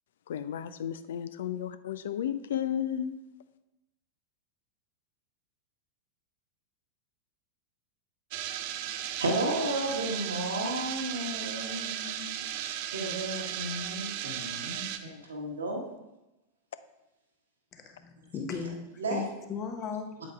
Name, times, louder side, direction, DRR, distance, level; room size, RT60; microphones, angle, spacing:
voice 1, 0.3-3.1, left 10 dB, 60° left, 13 dB, 0.4 m, -33 dB
sound 1, 8.3-15.0, right 11 dB, 50° right, 0.4 m, -36 dB
voice 2, 9.0-12.3 12.9-15.8 19.0-19.2, right 1 dB, 70° right, -1 dB, 1.3 m, -33 dB
voice 3, 17.7-20.1, left 6 dB, 30° left, 5 dB, 0.9 m, -37 dB
8.1 x 7.9 x 2.3 m, 0.95 s
figure-of-eight pair, 90°, 0 cm